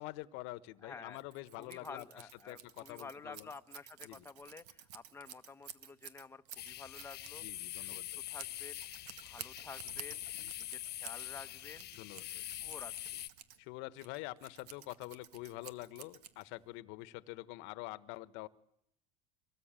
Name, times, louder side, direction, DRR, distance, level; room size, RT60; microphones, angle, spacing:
voice 1, 0.0-3.5 4.0-4.3 7.4-8.2 10.3-10.5 11.9-12.4 13.6-18.5, left 19 dB, 70° left, 16 dB, 1.2 m, -46 dB
voice 2, 0.8-1.2 1.6-7.4 7.8-8.0 8.3-8.8 9.2-10.2 10.7-11.9 12.2-13.2, left 4 dB, 10° left, 8 dB, 1.1 m, -51 dB
Scissors, 1.1-16.8, right 10 dB, 80° right, 2.0 m, -53 dB
sound 1, 6.6-13.3, left 14 dB, 50° left, 1.3 m, -44 dB
24.5 x 19.5 x 9.0 m, 0.75 s
supercardioid pair, 100°, 21 cm